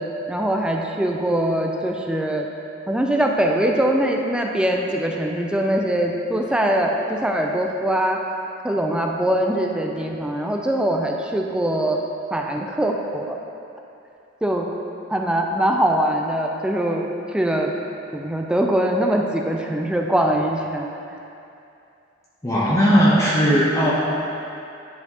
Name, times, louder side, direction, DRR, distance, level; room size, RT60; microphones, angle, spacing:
voice 1, 0.0-2.5 2.9-8.2 8.6-12.0 12.3-13.4 14.4-14.7 15.1-17.7 18.1-20.9, right 1 dB, 5° right, 1 dB, 0.4 m, -22 dB
voice 2, 22.4-23.9, equal, 15° left, -8 dB, 0.8 m, -17 dB
10.5 x 4.2 x 2.9 m, 2.7 s
head